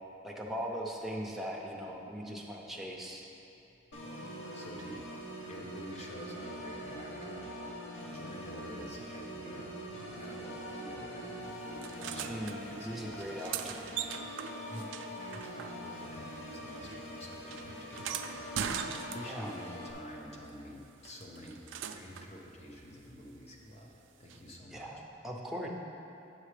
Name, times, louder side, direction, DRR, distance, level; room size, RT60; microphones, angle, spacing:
voice 1, 0.2-3.2 12.3-13.8 19.2-19.5 24.7-25.7, equal, ahead, -2 dB, 0.6 m, -40 dB
Organ, 3.9-19.9, equal, 75° left, 1.1 m, -43 dB
voice 2, 4.5-5.0 5.5-7.5 8.1-14.0 14.3-14.9 15.2-23.9 24.2-24.9, equal, 35° left, -1 dB, 0.8 m, -49 dB
sound 1, 11.8-12.6 13.2-16.1 16.4-19.6 21.0-22.3 24.3-24.4, right 8 dB, 80° right, 0.3 m, -40 dB
8.7 x 7.4 x 3.3 m, 2.9 s
head